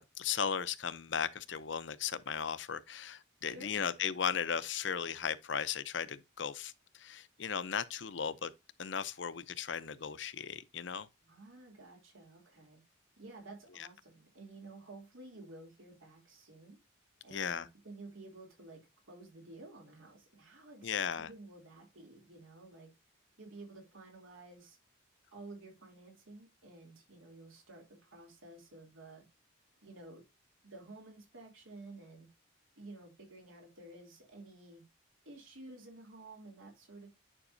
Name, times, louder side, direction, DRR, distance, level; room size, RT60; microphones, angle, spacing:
voice 1, 0.0-8.5 8.8-11.1 13.8-13.9 17.3-17.7 20.8-21.3, left 7 dB, 65° left, 0.6 m, -36 dB
voice 2, 3.5-3.8 11.2-12.8 13.2-16.8 17.2-22.9 23.4-24.8 25.3-29.3 29.8-30.2 30.6-32.3 32.8-34.8 35.2-37.1, right 2 dB, 85° right, 3.0 m, -52 dB
9.9 x 5.2 x 2.6 m
head